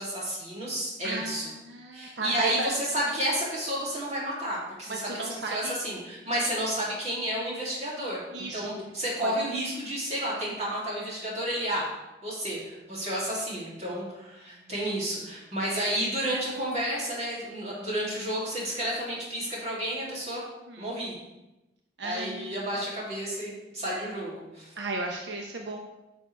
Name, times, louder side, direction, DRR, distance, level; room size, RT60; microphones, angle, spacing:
voice 1, 0.0-1.5 1.9-11.9 12.2-20.4 20.8-21.1 22.0-24.7, equal, 35° right, -6 dB, 3.1 m, -31 dB
voice 2, 1.0-2.7 4.9-5.7 8.3-8.7 9.2-9.3 20.7-20.9 22.0-22.6 24.8-25.8, right 2 dB, 80° right, 1 dB, 0.9 m, -34 dB
10.0 x 6.1 x 3.5 m, 1.0 s
head